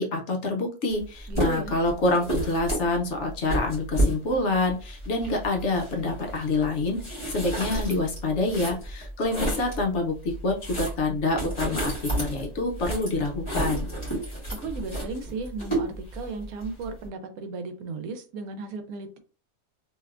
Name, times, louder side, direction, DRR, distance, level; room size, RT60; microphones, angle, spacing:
voice 1, 0.0-11.9 12.2-13.9, left 2 dB, 60° left, 0.8 m, -27 dB
sound 1, 0.9-1.0 1.3-9.8 10.2-17.1, right 1 dB, 20° left, 1.6 m, -31 dB
voice 2, 1.3-1.8 14.6-19.2, right 4 dB, 80° right, 1.0 m, -35 dB
3.2 x 2.8 x 2.4 m
omnidirectional pair, 1.5 m